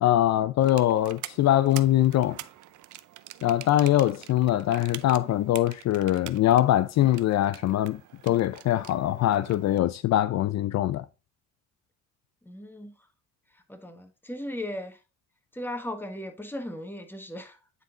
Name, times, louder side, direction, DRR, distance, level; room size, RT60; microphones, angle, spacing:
voice 1, 0.0-2.4 3.4-11.1, left 13 dB, 60° left, 0.5 m, -23 dB
sound 1, 0.6-9.8, right 14 dB, 80° right, 0.6 m, -45 dB
voice 2, 12.4-12.9 13.7-15.0 15.5-17.8, left 1 dB, 5° left, 1.3 m, -37 dB
9.3 x 3.9 x 3.8 m
cardioid pair, 90°, 30 cm